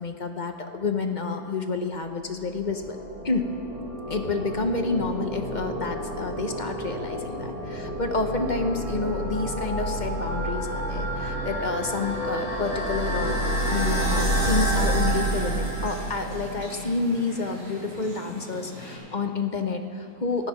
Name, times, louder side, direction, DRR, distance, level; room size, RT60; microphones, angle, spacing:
voice 1, 0.0-3.0 3.2-3.5 4.1-13.4 13.7-20.5, left 3 dB, 40° left, 5 dB, 0.8 m, -29 dB
sound 1, 2.4-16.6, right 1 dB, 20° left, 3.0 m, -29 dB
sound 2, 13.9-19.0, equal, 55° right, 3.9 m, -40 dB
15.0 x 10.5 x 5.8 m, 2.4 s
omnidirectional pair, 1.5 m